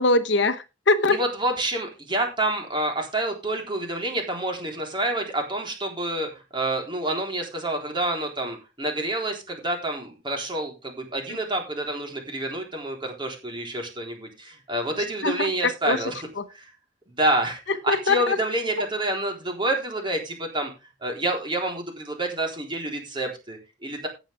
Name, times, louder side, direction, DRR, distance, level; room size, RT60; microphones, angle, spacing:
voice 1, 0.0-1.2 15.2-16.0 16.4-16.5 17.9-18.4, left 3 dB, 65° left, 10 dB, 1.0 m, -22 dB
voice 2, 1.1-16.3 16.5-16.7 17.1-20.7 21.0-24.1, right 1 dB, 25° right, 2 dB, 3.9 m, -28 dB
17.5 x 7.4 x 3.5 m, 0.28 s
head